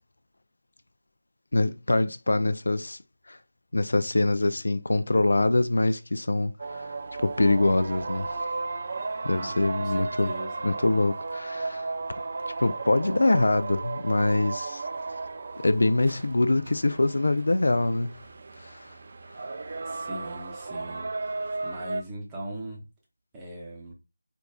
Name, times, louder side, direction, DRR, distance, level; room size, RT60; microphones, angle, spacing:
voice 1, 1.5-3.0 3.3-3.4 3.7-8.4 9.2-10.3 10.6-11.9 12.6-14.8 15.6-18.2 18.6-18.9, left 2 dB, 70° left, 0.3 m, -24 dB
sound 1, 6.6-22.0, right 3 dB, 40° right, 0.4 m, -35 dB
voice 2, 9.4-10.7 19.9-21.1 21.6-22.9 23.3-23.9, right 1 dB, 10° right, 0.8 m, -40 dB
4.5 x 2.5 x 2.3 m
figure-of-eight pair, 170°, 0 cm